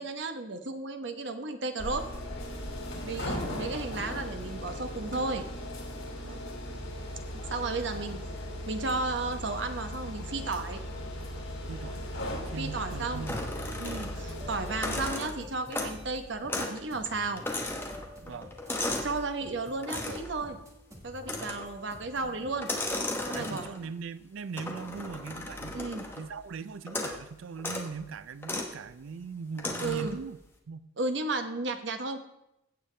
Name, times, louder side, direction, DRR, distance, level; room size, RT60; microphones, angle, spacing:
voice 1, 0.0-2.1 3.0-5.5 7.5-8.2 8.7-10.8 12.6-13.3 13.8-17.4 19.0-20.6 21.0-22.7 23.3-23.8 25.7-26.1 29.8-30.2 31.0-32.2, right 3 dB, 65° right, 1.0 m, -33 dB
sound 1, 1.8-15.1, left 1 dB, 90° left, 3.0 m, -38 dB
voice 2, 2.9-3.3 6.2-6.4 11.7-12.1 12.5-13.6 18.2-18.5 23.3-25.8 26.1-30.4 30.7-30.9, right 5 dB, 85° right, 0.4 m, -40 dB
sound 2, 12.8-22.9, left 1 dB, 15° right, 1.8 m, -50 dB
sound 3, 13.3-14.3 14.7-16.1 16.5-16.8 17.1-19.2 19.8-20.3 21.2-21.8 22.6-23.9 24.6-26.3 26.9-27.2 27.6-27.9 28.4-28.7 29.6-30.2, left 2 dB, 10° left, 1.0 m, -35 dB
16.0 x 7.0 x 3.3 m
head